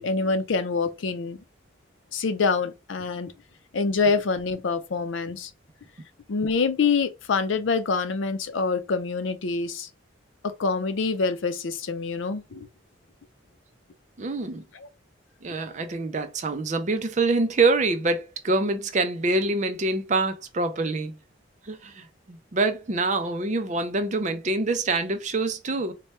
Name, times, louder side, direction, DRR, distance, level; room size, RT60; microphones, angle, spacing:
voice 1, 0.0-1.4 2.1-3.3 3.7-5.5 6.3-9.9 10.4-12.7, left 4 dB, 80° left, 0.5 m, -26 dB
voice 2, 14.2-14.6 15.4-21.1 21.7-25.9, right 3 dB, 40° right, 0.5 m, -25 dB
4.1 x 2.2 x 3.3 m
head